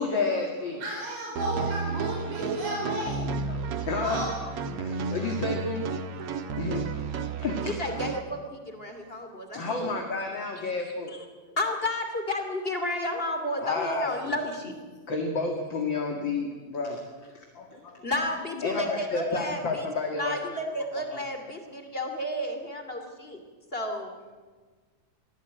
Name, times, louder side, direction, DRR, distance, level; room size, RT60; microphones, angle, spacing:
voice 1, 0.0-0.8 3.5-4.2 4.8-5.9 6.6-6.8 7.4-7.7 9.5-11.1 13.6-14.1 15.1-17.0 17.3-18.0 18.6-20.4 21.1-21.2, left 3 dB, 40° left, 2 dB, 2.5 m, -30 dB
voice 2, 0.8-3.2 4.0-4.3 9.8-9.9, right 1 dB, 80° right, -2 dB, 6.1 m, -32 dB
sound 1, 1.4-8.2, right 4 dB, 60° right, 1.9 m, -32 dB
voice 3, 7.6-10.3 11.1-11.2 11.6-14.8 18.0-19.8 20.2-23.4 23.7-24.1, left 1 dB, 20° left, 5 dB, 2.4 m, -32 dB
23.5 x 15.5 x 9.1 m, 1.4 s
omnidirectional pair, 3.7 m